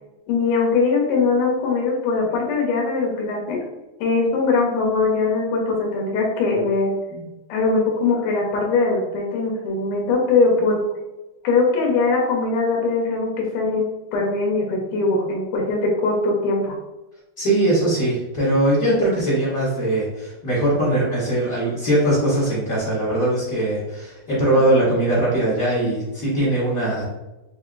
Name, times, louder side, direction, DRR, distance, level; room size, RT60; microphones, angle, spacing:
voice 1, 0.3-3.6 4.0-10.8 11.4-13.8 14.1-16.8 25.8-25.9, left 3 dB, 75° left, -1 dB, 2.4 m, -21 dB
voice 2, 17.4-27.0, right 1 dB, 50° left, -9 dB, 1.0 m, -21 dB
6.6 x 2.8 x 2.5 m, 1.0 s
omnidirectional pair, 3.9 m